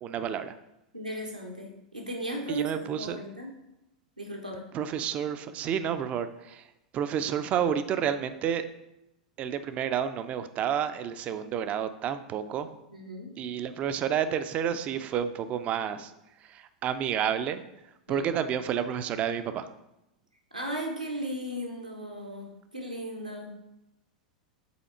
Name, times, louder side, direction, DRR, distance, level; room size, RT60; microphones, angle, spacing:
voice 1, 0.0-0.5 2.5-3.2 4.7-6.6 6.9-8.7 9.4-12.7 13.4-16.1 16.5-17.6 18.1-19.7, right 8 dB, 35° right, 11 dB, 0.5 m, -30 dB
voice 2, 0.9-3.5 4.2-4.7 12.9-13.3 18.1-18.3 20.5-23.5, equal, 90° right, 1 dB, 1.2 m, -36 dB
5.6 x 4.2 x 4.3 m, 0.89 s
figure-of-eight pair, 90°, 4 cm